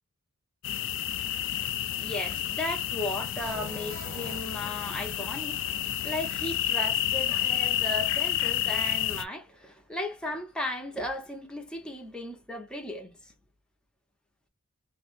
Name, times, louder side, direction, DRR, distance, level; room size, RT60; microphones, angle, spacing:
sound 1, 0.6-9.2, left 11 dB, 60° left, 0.4 m, -30 dB
voice 1, 2.0-13.1, left 1 dB, 5° left, 0.9 m, -36 dB
sound 2, 3.4-5.4, right 2 dB, 75° right, 1.5 m, -44 dB
3.4 x 2.8 x 2.6 m
head